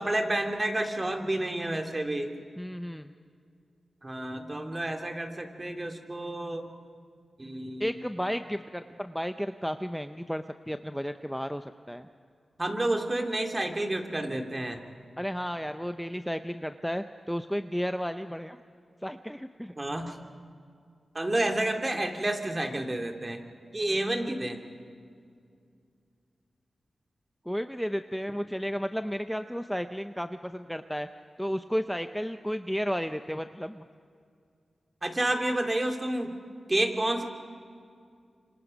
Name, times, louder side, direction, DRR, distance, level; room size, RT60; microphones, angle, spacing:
voice 1, 0.0-2.3 4.0-6.7 7.4-7.9 12.6-14.8 19.8-20.2 21.1-23.4 23.7-24.6 35.0-36.3 36.7-37.2, right 1 dB, 30° right, 4 dB, 2.6 m, -30 dB
voice 2, 2.6-3.1 7.8-12.1 15.2-18.6 19.0-19.7 27.5-31.1 31.4-33.9, equal, ahead, 9 dB, 0.7 m, -33 dB
27.0 x 26.0 x 5.3 m, 2.3 s
cardioid pair, 55°, 0 cm